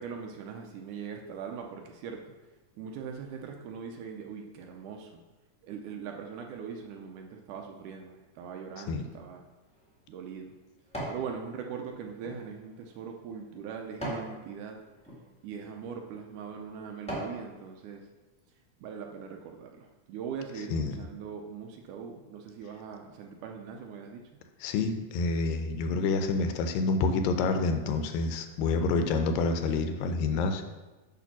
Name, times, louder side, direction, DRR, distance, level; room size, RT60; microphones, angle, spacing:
voice 1, 0.0-2.3 2.8-5.2 5.6-9.4 10.1-10.5 11.1-14.8 15.4-18.1 18.8-24.3, right 6 dB, 80° right, 3 dB, 1.9 m, -41 dB
sound 1, 9.4-11.3 11.7-14.3 14.9-15.2 15.9-16.0 16.5-17.4 17.9-18.0, right 1 dB, 5° left, 0.5 m, -40 dB
voice 2, 24.6-30.6, left 3 dB, 85° left, 7 dB, 2.3 m, -28 dB
8.4 x 3.4 x 5.9 m, 1.2 s
omnidirectional pair, 4.0 m